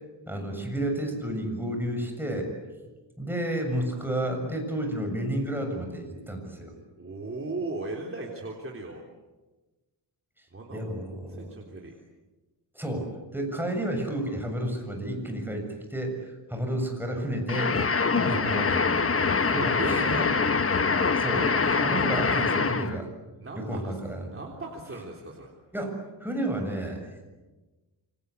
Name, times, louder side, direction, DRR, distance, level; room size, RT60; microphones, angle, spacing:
voice 1, 0.3-2.5 3.2-6.7 10.4-11.5 12.7-17.8 18.1-20.3 21.1-23.1 23.6-24.3 25.7-27.0, right 1 dB, 5° right, 3 dB, 7.1 m, -31 dB
voice 2, 7.0-9.0 10.5-10.9 11.3-11.9 19.5-20.2 23.4-24.0 24.3-25.5, right 2 dB, 30° right, -1 dB, 3.6 m, -36 dB
sound 1, 17.5-23.0, left 4 dB, 30° left, 1.3 m, -24 dB
28.0 x 25.5 x 8.4 m, 1.2 s
wide cardioid pair, 130°, 44 cm